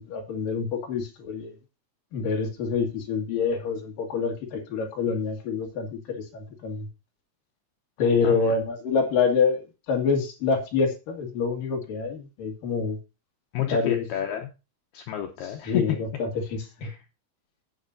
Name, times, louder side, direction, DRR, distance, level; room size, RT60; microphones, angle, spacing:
voice 1, 0.0-1.5 2.1-6.9 8.0-13.0 13.6-14.0 15.7-16.9, left 5 dB, 55° left, 3 dB, 2.9 m, -26 dB
voice 2, 8.2-8.5 13.5-14.5 14.9-16.0 16.8-17.0, left 10 dB, 85° left, 4 dB, 2.2 m, -30 dB
17.5 x 6.5 x 2.6 m, 0.28 s
omnidirectional pair, 5.8 m